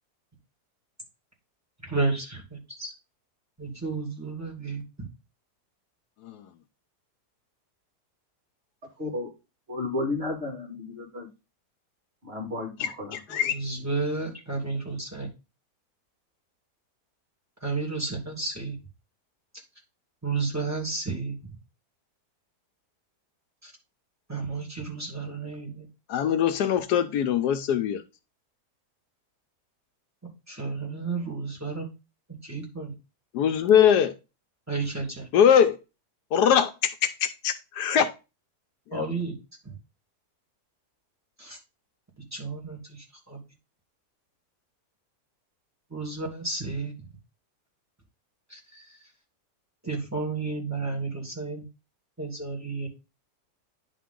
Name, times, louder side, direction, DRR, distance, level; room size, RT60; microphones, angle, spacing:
voice 1, 1.8-2.9 3.6-5.1 13.3-15.3 17.6-18.8 20.2-21.6 23.6-23.7 24.3-25.9 30.5-31.9 32.4-32.9 34.0-34.1 34.7-35.3 38.9-39.4 39.6-39.8 41.4-41.6 42.3-43.4 45.9-46.9 48.5-49.1 49.8-51.6 52.2-52.9, right 3 dB, 10° right, 2.3 m, -32 dB
voice 2, 9.0-9.3 9.7-11.3 12.2-13.2, left 2 dB, 35° right, 2.7 m, -32 dB
voice 3, 13.1-13.5 26.1-28.0 33.3-34.1 35.3-35.8 36.3-38.1, left 8 dB, 75° left, 1.2 m, -22 dB
10.0 x 3.7 x 3.7 m
omnidirectional pair, 1.8 m